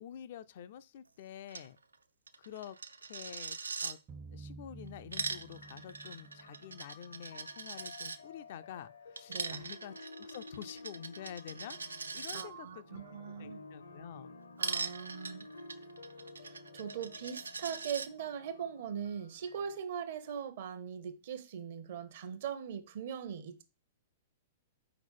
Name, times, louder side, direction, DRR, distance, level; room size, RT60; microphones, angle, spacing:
voice 1, 0.0-1.8 2.4-4.0 4.3-13.0 13.4-14.4, left 9 dB, 50° left, 0.4 m, -48 dB
Coin (dropping), 1.5-1.7 1.9-2.0 2.3-3.9 4.9-8.2 9.2-12.4 14.6-18.1, right 4 dB, 75° right, 0.4 m, -41 dB
sound 1, 4.1-7.8, right 3 dB, 25° right, 0.5 m, -52 dB
sound 2, 5.5-19.8, left 3 dB, 70° left, 0.7 m, -53 dB
voice 2, 9.3-9.7 12.3-13.6 14.6-15.5 16.4-23.6, right 8 dB, 50° right, 0.8 m, -41 dB
4.6 x 3.9 x 5.4 m
figure-of-eight pair, 105°, 0 cm